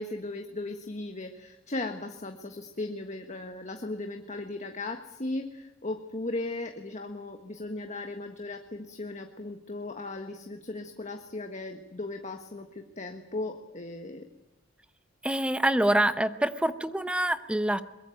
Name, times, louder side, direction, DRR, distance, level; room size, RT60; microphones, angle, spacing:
voice 1, 0.0-14.3, left 2 dB, 35° left, 5 dB, 1.5 m, -37 dB
voice 2, 15.2-17.8, right 1 dB, 5° right, 11 dB, 0.9 m, -26 dB
23.0 x 22.0 x 9.2 m, 0.92 s
head